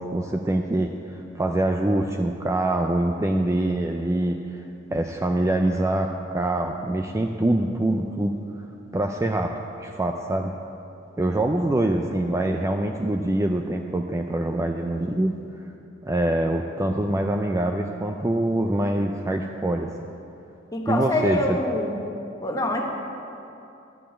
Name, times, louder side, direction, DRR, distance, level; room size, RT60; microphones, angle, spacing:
voice 1, 0.0-4.4 4.9-8.4 8.9-10.5 11.2-15.4 16.0-20.1 20.9-21.6, right 1 dB, 15° right, 3 dB, 0.4 m, -24 dB
voice 2, 20.7-21.9 22.4-22.8, left 1 dB, 20° left, 0 dB, 1.2 m, -25 dB
12.0 x 5.4 x 8.7 m, 2.7 s
head